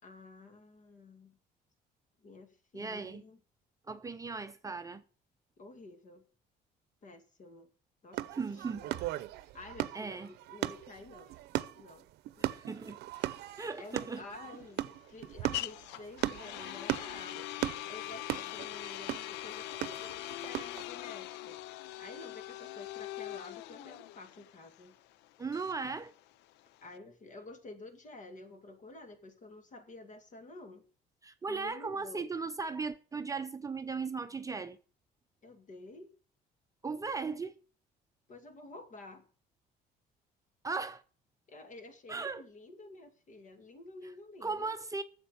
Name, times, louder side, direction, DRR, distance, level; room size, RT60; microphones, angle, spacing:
voice 1, 0.0-1.4 2.2-3.4 5.6-6.2 7.0-7.7 8.0-12.1 12.4-13.0 13.5-21.6 22.0-25.0 26.8-30.8 31.4-32.2 35.4-36.1 38.3-39.3 41.5-44.7, left 2 dB, 50° left, 2.2 m, -51 dB
voice 2, 2.7-3.2 3.9-5.0 8.3-8.9 9.9-10.3 12.4-13.0 13.6-14.2 25.4-26.1 31.2-34.8 36.8-37.6 40.6-41.0 42.1-42.4 44.4-45.0, right 4 dB, 20° right, 0.6 m, -37 dB
sound 1, 8.1-20.8, right 15 dB, 80° right, 0.7 m, -38 dB
sound 2, 13.2-27.0, left 15 dB, 90° left, 0.4 m, -43 dB
10.0 x 7.4 x 6.9 m
cardioid pair, 110°, 17 cm